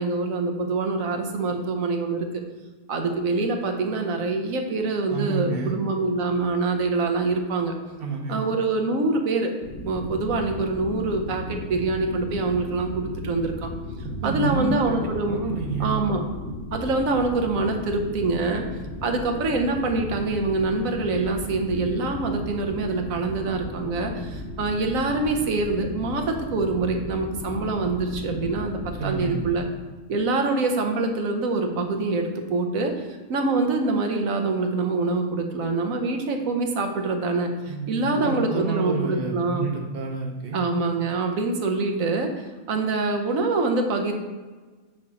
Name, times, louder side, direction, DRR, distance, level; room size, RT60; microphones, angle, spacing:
voice 1, 0.0-2.3 2.9-7.7 8.3-9.5 9.8-13.7 14.2-15.4 15.8-16.2 16.7-18.6 19.0-29.6 30.1-39.7 40.5-44.1, right 3 dB, 65° right, 4 dB, 1.2 m, -25 dB
voice 2, 5.1-5.8 8.0-8.4 14.2-15.0 15.3-16.1 28.9-29.4 37.7-40.6, right 4 dB, 45° right, 2 dB, 1.0 m, -29 dB
sound 1, 9.6-29.6, left 2 dB, 40° left, 1.1 m, -36 dB
7.5 x 3.0 x 6.1 m, 1.3 s
omnidirectional pair, 1.6 m